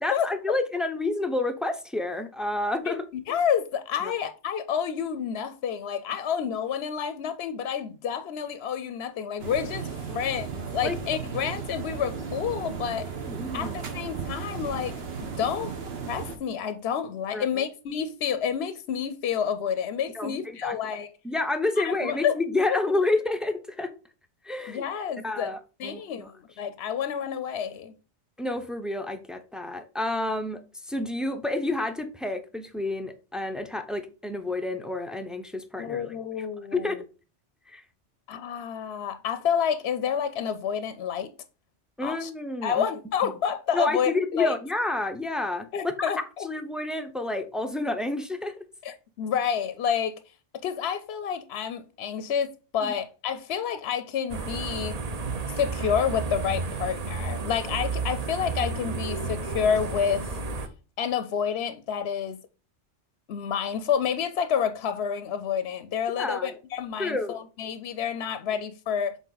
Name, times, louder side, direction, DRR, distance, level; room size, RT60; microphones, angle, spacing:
voice 1, 0.0-3.1 4.0-4.1 10.1-10.2 10.8-11.0 13.3-13.9 17.3-17.6 20.1-20.8 21.2-23.9 24.4-24.8 25.2-26.3 28.4-36.1 36.7-37.1 37.7-37.8 42.0-42.8 43.2-43.3 43.7-46.1 46.4-48.6 52.8-52.9 66.2-66.5 67.0-67.4, left 2 dB, ahead, 0.4 m, -29 dB
voice 2, 2.9-9.9 10.1-13.1 13.5-15.7 16.1-21.1 21.8-22.3 24.7-25.5 25.8-27.9 35.8-37.0 38.3-41.3 42.0-42.3 42.6-44.6 45.7-46.5 48.8-50.1 50.6-55.0 55.5-60.4 61.0-62.4 63.3-69.2, left 8 dB, 65° left, 0.8 m, -29 dB
sound 1, 9.4-16.4, right 6 dB, 60° right, 1.2 m, -35 dB
sound 2, 54.3-60.7, right 4 dB, 40° right, 0.7 m, -32 dB
7.2 x 4.0 x 3.9 m
omnidirectional pair, 1.2 m